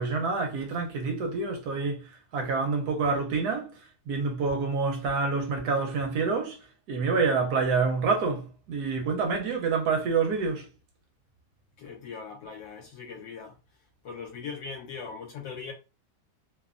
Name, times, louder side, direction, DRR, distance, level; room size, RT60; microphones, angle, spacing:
voice 1, 0.0-2.0 2.3-3.7 4.1-6.6 6.9-10.7, right 4 dB, 65° right, 1.0 m, -27 dB
voice 2, 11.8-13.6 14.0-15.7, left 5 dB, 75° left, 1.2 m, -40 dB
3.2 x 2.2 x 2.4 m
omnidirectional pair, 2.2 m